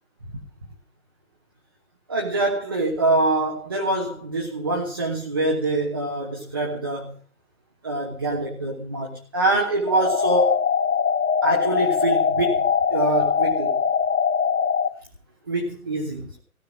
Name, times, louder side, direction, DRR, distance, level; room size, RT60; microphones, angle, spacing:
voice 1, 2.1-7.1 7.8-10.6 11.4-12.6 12.9-13.7 15.5-16.4, right 2 dB, 15° right, 1.1 m, -24 dB
sound 1, 9.9-14.9, left 6 dB, 65° left, 2.3 m, -22 dB
16.5 x 6.6 x 9.7 m
hypercardioid pair, 175°, 44 cm